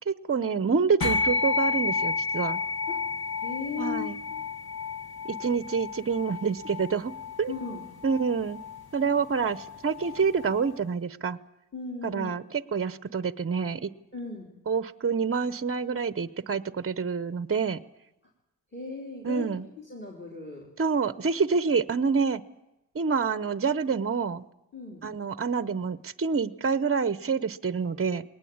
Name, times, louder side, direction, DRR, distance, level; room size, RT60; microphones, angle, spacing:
voice 1, 0.1-2.6 3.8-4.2 5.3-7.1 7.4-7.5 8.0-8.6 8.9-11.4 12.0-12.4 12.7-13.9 14.7-17.8 19.2-19.6 20.8-22.4 22.9-24.4 25.0-28.2, right 5 dB, 35° right, 16 dB, 0.7 m, -27 dB
sound 1, 1.0-10.7, left 4 dB, 65° left, 2.0 m, -32 dB
voice 2, 3.4-4.4 7.5-7.8 11.7-12.3 14.1-14.5 18.7-19.5 19.8-20.7 23.8-24.0 24.7-25.1, left 4 dB, 30° left, 1 dB, 3.5 m, -37 dB
21.0 x 19.0 x 8.7 m, 0.93 s
wide cardioid pair, 105°, 39 cm